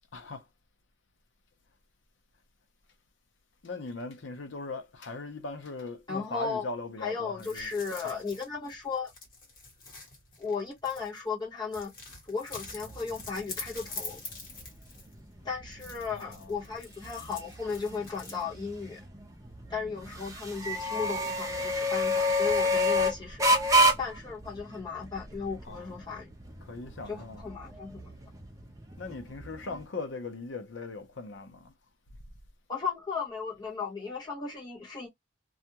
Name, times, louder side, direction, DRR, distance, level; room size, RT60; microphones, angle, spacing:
voice 1, 0.1-0.5 3.6-7.8 8.0-8.2 16.1-16.7 25.6-26.3 26.6-27.5 29.0-31.7, left 3 dB, 75° left, 0.7 m, -40 dB
voice 2, 6.1-6.6 7.0-9.1 10.4-11.9 12.3-14.2 15.4-19.0 19.7-23.6 24.0-26.3 27.1-28.1 32.7-35.1, left 5 dB, 20° left, 0.9 m, -35 dB
sound 1, 7.4-11.3 11.7-15.2 15.7-18.4, left 3 dB, 50° left, 1.3 m, -45 dB
sound 2, 12.6-29.8, equal, 15° right, 0.6 m, -31 dB
2.4 x 2.2 x 2.8 m
head